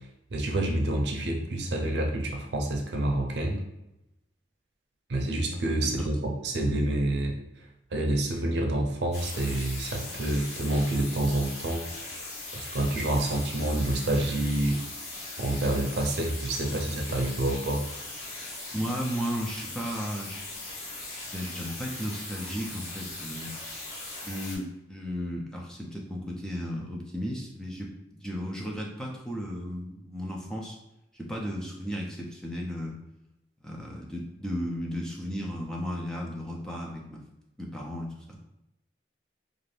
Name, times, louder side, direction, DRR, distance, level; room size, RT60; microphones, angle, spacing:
voice 1, 0.3-3.6 5.1-7.4 7.9-11.8 12.5-14.8 15.4-17.8, right 1 dB, 75° right, 1 dB, 0.6 m, -28 dB
sound 1, 9.1-24.6, left 2 dB, 40° left, 0.9 m, -39 dB
voice 2, 18.7-20.4 21.3-23.5 24.1-27.9 28.2-30.8 31.1-33.0 33.6-37.2 37.6-38.4, equal, 5° left, -1 dB, 0.4 m, -34 dB
2.5 x 2.4 x 3.2 m, 0.89 s
head